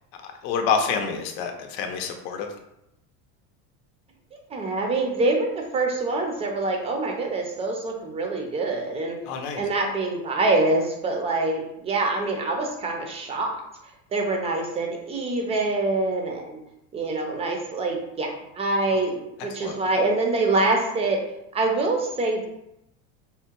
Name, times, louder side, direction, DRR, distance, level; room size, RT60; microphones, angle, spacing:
voice 1, 0.3-2.5 9.3-9.6 19.6-19.8, left 6 dB, 60° left, 4 dB, 0.7 m, -27 dB
voice 2, 4.5-9.2 9.6-13.5 14.1-16.6 16.9-21.2 21.5-22.5, right 2 dB, 15° right, 2 dB, 0.5 m, -25 dB
3.7 x 2.1 x 4.4 m, 0.84 s
cardioid pair, 150°, 39 cm